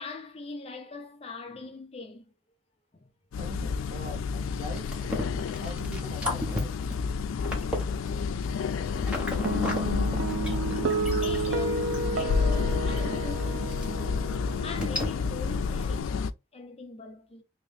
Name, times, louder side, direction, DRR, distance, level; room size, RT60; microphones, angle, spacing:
voice 1, 0.0-2.2 2.9-3.1 5.6-5.7 9.5-9.8 11.2-14.3 14.6-16.1 16.5-17.4, left 3 dB, 30° left, 0.5 m, -42 dB
sound 1, 3.3-16.3, left 5 dB, 85° left, 0.3 m, -30 dB
voice 2, 3.3-5.0 5.6-6.7, equal, 35° right, 1.3 m, -42 dB
sound 2, 4.7-9.8 10.1-12.0 12.5-12.6 13.0-13.1 13.4-13.5 13.7-13.8 14.4-14.5 14.8-15.1, left 1 dB, 5° right, 0.8 m, -34 dB
Guitar, 9.5-16.0, right 4 dB, 65° right, 0.5 m, -32 dB
3.0 x 2.9 x 3.2 m
head